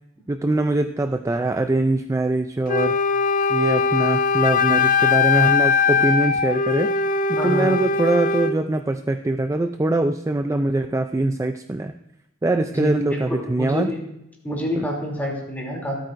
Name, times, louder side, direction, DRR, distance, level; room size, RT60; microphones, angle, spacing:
voice 1, 0.3-3.0 3.5-6.9 7.3-11.9 12.4-13.9 14.7-14.9, right 2 dB, 15° right, 8 dB, 0.3 m, -22 dB
Wind instrument woodwind instrument, 2.7-8.6, left 5 dB, 40° left, 0.5 m, -20 dB
voice 2, 7.4-7.7 12.7-14.0 14.4-16.0, equal, 10° left, -2 dB, 2.8 m, -27 dB
25.0 x 8.8 x 2.6 m, 0.87 s
head